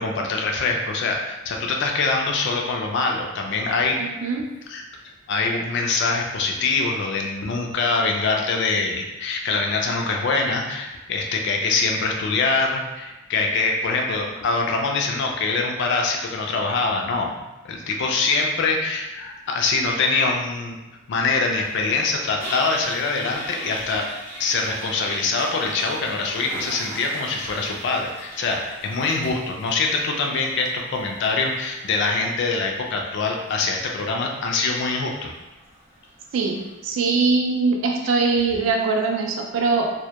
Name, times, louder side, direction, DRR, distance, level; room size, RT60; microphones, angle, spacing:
voice 1, 0.0-4.0 4.7-4.8 5.3-17.3 17.6-20.8 21.1-24.0 24.4-35.3, left 3 dB, 55° left, 1 dB, 0.3 m, -24 dB
voice 2, 4.0-4.5 36.3-39.9, right 4 dB, 65° right, 1 dB, 0.3 m, -22 dB
Toilet flush, 21.6-36.8, equal, 10° right, 0.6 m, -40 dB
2.1 x 2.1 x 2.8 m, 1.1 s
head